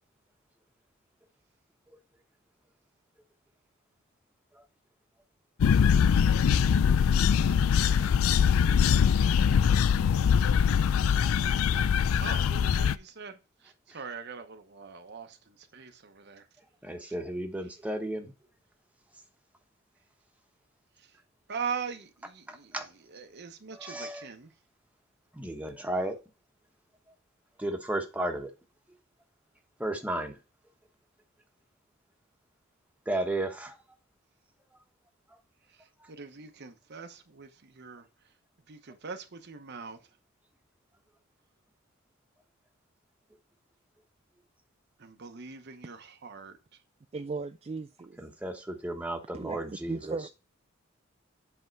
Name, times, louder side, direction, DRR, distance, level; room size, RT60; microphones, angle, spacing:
sound 1, 5.6-13.0, left 7 dB, 85° left, 0.4 m, -23 dB
voice 1, 12.1-13.4 13.6-16.4 21.5-22.7 23.1-24.5 36.1-38.0 38.7-40.0 45.0-46.6, right 6 dB, 55° right, 0.9 m, -41 dB
voice 2, 16.6-18.3 22.5-22.9 23.7-24.3 25.3-26.2 27.6-28.5 29.8-30.4 33.0-33.8 34.7-34.8 35.3-35.4 36.0-36.1 48.2-50.2, right 1 dB, 5° right, 1.1 m, -34 dB
voice 3, 47.1-48.2 49.3-49.6 49.9-50.3, right 4 dB, 30° right, 0.4 m, -36 dB
8.0 x 3.6 x 4.5 m
head